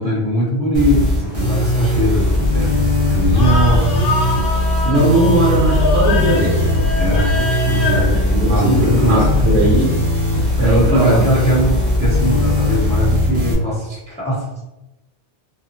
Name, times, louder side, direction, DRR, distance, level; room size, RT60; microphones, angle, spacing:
voice 1, 0.0-3.9 6.9-9.2 9.6-9.7 10.6-14.5, equal, 5° left, -8 dB, 0.7 m, -20 dB
sound 1, 0.7-13.5, left 1 dB, 30° right, 0.7 m, -18 dB
sound 2, 1.2-13.1, left 2 dB, 65° left, 0.9 m, -27 dB
voice 2, 4.8-6.7 8.1-9.9 10.6-11.2, right 1 dB, 65° right, -4 dB, 0.9 m, -18 dB
2.7 x 2.4 x 2.5 m, 0.97 s
omnidirectional pair, 1.2 m